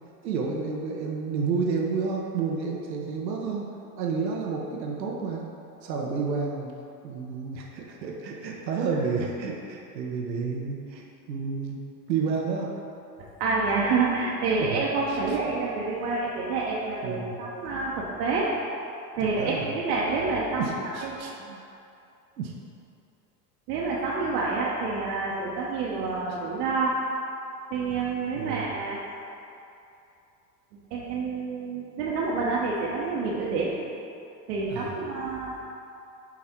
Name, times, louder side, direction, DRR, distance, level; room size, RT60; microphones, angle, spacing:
voice 1, 0.2-3.7 4.0-5.4 5.8-6.7 7.0-12.8 14.6-14.8 15.1-15.4 17.0-17.4 19.4-19.7 20.6-21.6 22.4-22.5 28.4-28.7 34.7-34.9, right 5 dB, 90° right, -1 dB, 0.9 m, -30 dB
voice 2, 13.4-18.5 19.1-21.2 23.7-26.9 27.7-29.0 30.9-33.8 34.5-35.5, right 4 dB, 65° right, -5 dB, 1.1 m, -28 dB
6.2 x 4.2 x 4.4 m, 2.7 s
hypercardioid pair, 85°, 49 cm